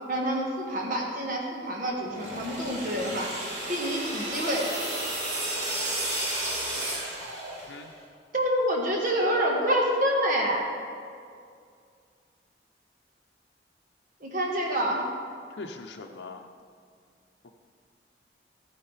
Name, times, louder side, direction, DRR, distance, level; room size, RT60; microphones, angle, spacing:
voice 1, 0.1-3.3 3.7-4.7 8.3-10.6 14.2-15.1, equal, 50° right, -1 dB, 1.4 m, -27 dB
sound 1, 2.0-7.9, right 1 dB, 75° right, 3.0 m, -32 dB
voice 2, 15.6-16.5, left 3 dB, 85° left, 2 dB, 0.6 m, -41 dB
13.5 x 10.0 x 3.3 m, 2.2 s
head